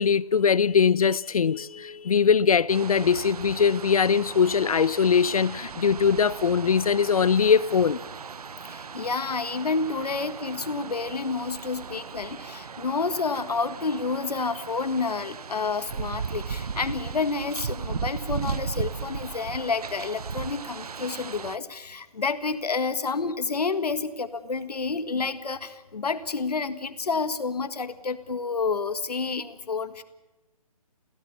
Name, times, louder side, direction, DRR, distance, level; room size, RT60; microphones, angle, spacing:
voice 1, 0.0-8.0, left 6 dB, 65° left, 0.7 m, -21 dB
sound 1, 2.7-21.6, right 6 dB, 75° right, 0.8 m, -37 dB
voice 2, 8.6-30.0, left 4 dB, 90° left, 1.7 m, -29 dB
25.5 x 16.5 x 7.1 m
hypercardioid pair, 170°, 20 cm